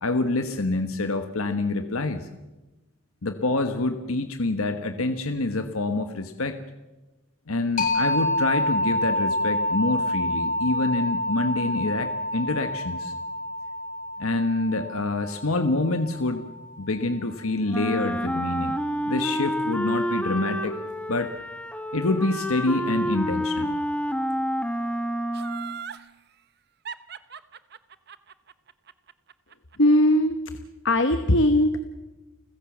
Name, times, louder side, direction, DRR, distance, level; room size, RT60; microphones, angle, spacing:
voice 1, 0.0-2.3 3.2-6.6 7.5-13.1 14.2-16.4 16.8-18.8 19.0-20.7 21.1-21.3 21.9-23.7, left 2 dB, 85° left, 8 dB, 1.3 m, -26 dB
sound 1, 7.8-17.2, left 1 dB, 40° left, 3.2 m, -28 dB
Wind instrument woodwind instrument, 17.7-25.8, equal, 5° left, 1.2 m, -28 dB
Laughter, 25.3-26.1 26.9-30.0 30.3-30.4, right 7 dB, 50° right, 0.9 m, -39 dB
voice 2, 29.8-30.4 30.8-31.8, left 1 dB, 60° left, 9 dB, 1.2 m, -19 dB
30.0 x 15.5 x 7.3 m, 1.1 s
head